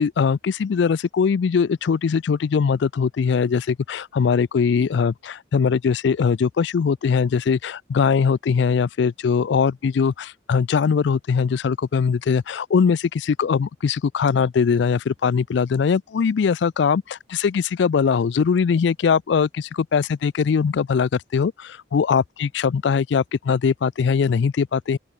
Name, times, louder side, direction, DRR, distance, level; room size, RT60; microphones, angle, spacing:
voice 1, 0.0-25.0, left 6 dB, 65° left, 0.3 m, -21 dB
open air
head